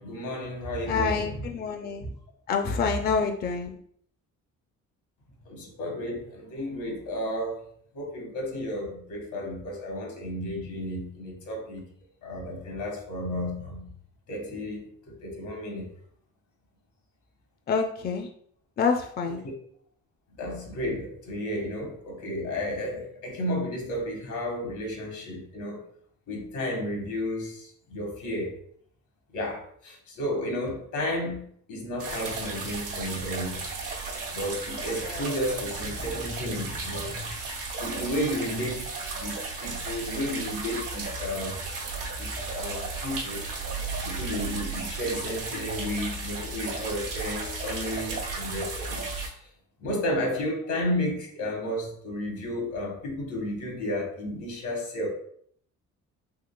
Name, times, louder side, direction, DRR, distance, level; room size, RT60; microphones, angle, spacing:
voice 1, 0.0-1.4 2.0-2.1 5.4-7.6 7.9-11.8 12.2-13.9 14.3-15.9 19.4-19.5 20.4-25.8 26.3-28.6 29.3-33.7 34.3-37.4 37.8-38.9 39.2-41.5 42.2-43.4 44.0-49.0 49.3-49.5 49.8-55.1, left 1 dB, 80° left, 1 dB, 1.2 m, -32 dB
voice 2, 0.9-2.1 2.5-3.8 17.7-18.3 18.8-19.4 35.0-35.3, left 5 dB, 35° left, 4 dB, 0.4 m, -27 dB
sound 1, 32.0-49.3, right 3 dB, 90° right, 1.0 m, -34 dB
3.6 x 3.1 x 2.2 m, 0.62 s
cardioid pair, 90°, 30 cm